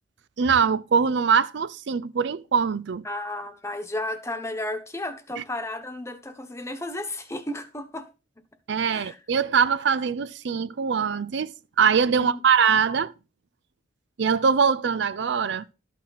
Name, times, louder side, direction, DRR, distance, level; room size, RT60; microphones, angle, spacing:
voice 1, 0.4-3.0 5.4-5.5 8.7-11.5 11.8-13.1 14.2-15.7, right 6 dB, 65° right, 0.5 m, -22 dB
voice 2, 3.0-8.1 8.9-9.2 12.2-12.4, left 1 dB, 15° left, 1.2 m, -33 dB
13.0 x 6.1 x 4.2 m
head